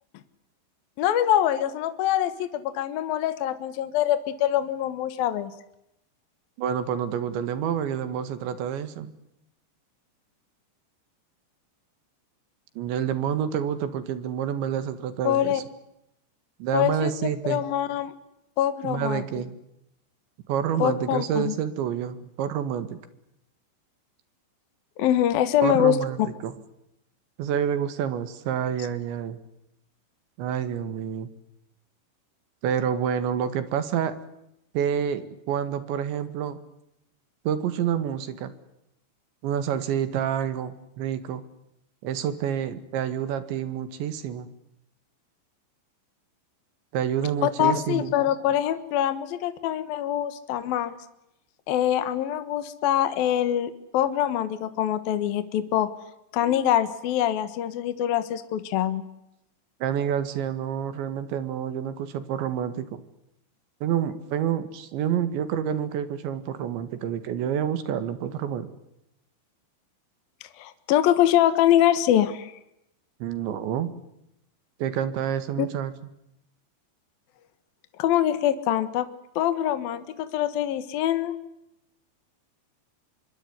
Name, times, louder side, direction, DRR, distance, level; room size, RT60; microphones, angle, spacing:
voice 1, 1.0-5.5 15.2-15.6 16.7-18.1 18.6-19.2 20.8-21.5 25.0-26.0 47.4-51.0 51.7-55.9 56.3-59.0 70.6-72.5 75.6-75.7 78.0-79.1 79.4-81.3, left 11 dB, 65° left, 12 dB, 2.8 m, -24 dB
voice 2, 6.6-9.1 12.8-15.6 16.6-17.6 18.8-19.6 20.5-23.0 25.6-26.5 27.4-29.4 30.4-31.3 32.6-34.2 34.7-36.6 37.5-38.5 39.4-41.4 42.0-44.5 46.9-48.1 59.8-63.0 63.8-68.7 73.2-73.9 74.8-75.9, right 9 dB, 75° right, 12 dB, 4.1 m, -28 dB
26.0 x 22.5 x 9.6 m, 0.82 s
omnidirectional pair, 5.3 m